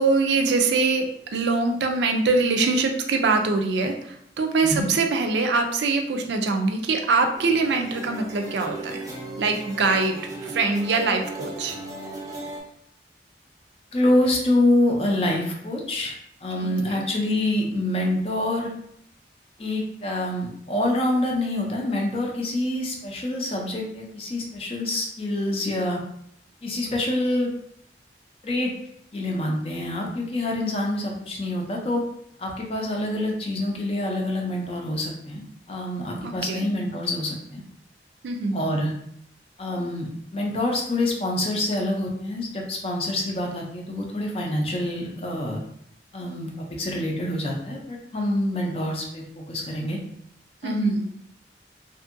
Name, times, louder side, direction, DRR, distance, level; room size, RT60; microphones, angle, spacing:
voice 1, 0.0-9.0 9.4-11.8 16.8-17.0 36.2-36.7 38.2-38.7 50.6-51.1, right 3 dB, 80° right, 4 dB, 0.4 m, -23 dB
sound 1, 7.4-12.6, right 2 dB, 20° right, 0.5 m, -37 dB
voice 2, 13.9-16.1 16.4-18.7 19.6-26.0 26.6-27.5 28.4-28.7 29.1-32.0 32.4-35.4 35.7-37.6 38.5-38.9 39.6-45.6 46.1-46.5 46.8-49.2 49.5-50.0 50.6-50.9, left 1 dB, 35° left, 0 dB, 0.5 m, -26 dB
2.6 x 2.5 x 2.5 m, 0.71 s
head